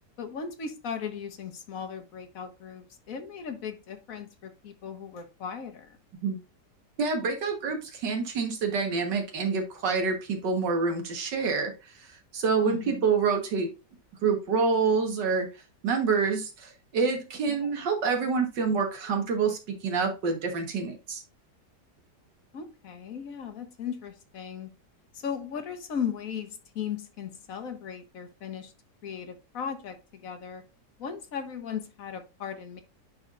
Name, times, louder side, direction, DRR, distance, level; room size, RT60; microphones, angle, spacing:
voice 1, 0.2-6.0 12.6-13.0 17.5-17.7 22.5-24.7 25.1-28.7 29.0-30.6 31.0-32.8, left 7 dB, 55° left, 7 dB, 1.4 m, -37 dB
voice 2, 7.0-11.7 12.0-13.7 14.2-15.5 15.8-21.2, right 5 dB, 85° right, 4 dB, 2.0 m, -27 dB
10.5 x 4.4 x 2.5 m, 0.28 s
omnidirectional pair, 1.9 m